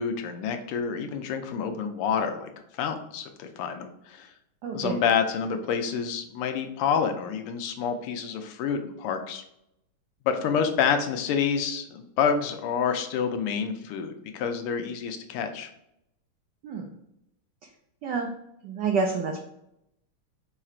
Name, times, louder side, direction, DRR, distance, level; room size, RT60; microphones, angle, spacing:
voice 1, 0.0-4.3 4.7-9.4 10.2-15.7, left 6 dB, 85° left, 6 dB, 1.5 m, -28 dB
voice 2, 4.6-4.9 16.6-16.9 18.0-18.3 18.6-19.4, right 5 dB, 80° right, 2 dB, 0.9 m, -28 dB
4.7 x 2.4 x 4.3 m, 0.79 s
omnidirectional pair, 2.4 m